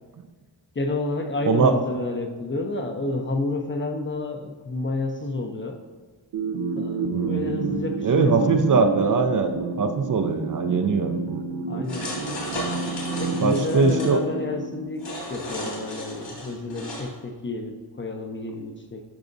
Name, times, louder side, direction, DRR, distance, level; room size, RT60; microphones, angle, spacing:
voice 1, 0.8-5.8 6.7-8.5 11.7-12.1 12.6-12.7 13.2-19.0, left 2 dB, 25° left, 4 dB, 0.6 m, -30 dB
sound 1, 6.3-15.3, right 4 dB, 80° right, 0.7 m, -30 dB
voice 2, 7.1-7.7 8.0-11.1 13.4-14.2, right 4 dB, 45° right, 6 dB, 0.5 m, -21 dB
sound 2, 11.9-14.1 15.0-17.0, left 1 dB, 70° left, 2.4 m, -34 dB
12.0 x 4.8 x 2.6 m, 1.3 s
wide cardioid pair, 95°, 45 cm